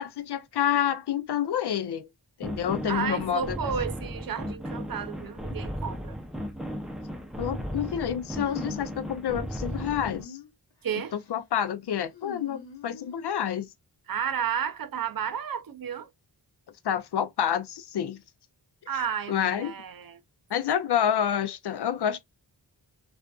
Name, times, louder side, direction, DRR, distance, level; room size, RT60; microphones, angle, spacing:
voice 1, 0.0-2.1 2.4-3.6 7.4-10.4 11.3-13.7 16.8-18.2 19.3-19.7 20.5-22.2, left 9 dB, 60° left, 0.5 m, -28 dB
sound 1, 2.4-10.2, equal, ahead, 0.5 m, -35 dB
voice 2, 2.8-6.2 10.8-11.1 14.1-16.1 18.9-20.2, right 7 dB, 50° right, 0.5 m, -32 dB
sound 2, 8.4-9.0 9.8-10.5 10.9-11.3 12.1-13.3, left 6 dB, 85° left, 0.9 m, -44 dB
2.4 x 2.4 x 2.2 m
wide cardioid pair, 65°, 45 cm